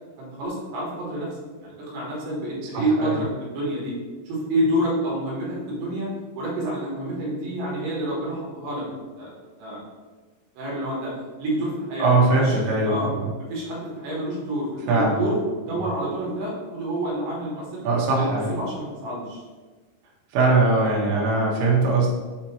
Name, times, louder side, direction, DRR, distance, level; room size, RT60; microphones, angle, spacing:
voice 1, 0.2-3.9 4.3-6.1 6.4-9.8 10.6-11.1 11.4-12.6 12.8-13.1 13.5-17.8 18.1-19.4, right 1 dB, 65° right, -6 dB, 3.5 m, -28 dB
voice 2, 12.0-13.3 14.9-15.2 15.7-15.8 17.8-18.6 20.3-22.1, right 3 dB, 85° right, -3 dB, 3.6 m, -21 dB
8.0 x 2.9 x 4.3 m, 1.4 s
omnidirectional pair, 5.8 m